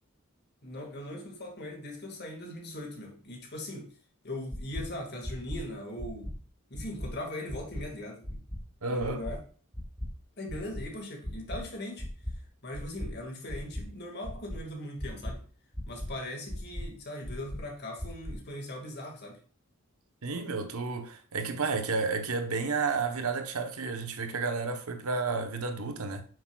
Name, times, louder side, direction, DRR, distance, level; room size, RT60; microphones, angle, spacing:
voice 1, 0.6-3.9 4.2-6.3 6.7-8.4 8.9-9.4 10.4-12.1 12.6-15.4 15.9-19.4, left 1 dB, 50° left, 1.9 m, -40 dB
sound 1, 4.5-4.8 5.2-5.6 6.0-6.3 6.7-7.1 7.5-7.8 8.2-8.6 9.0-9.3 9.7-10.1 10.5-10.8 11.2-11.6 12.0-12.3 12.7-13.1 13.5-13.8 14.2-14.6 15.0-15.3 15.7-16.1 16.5-16.8 17.2-17.6 18.0-18.3, left 1 dB, 5° right, 1.1 m, -36 dB
voice 2, 8.8-9.2 20.2-26.2, right 4 dB, 85° right, 1.0 m, -31 dB
8.8 x 6.5 x 2.3 m
head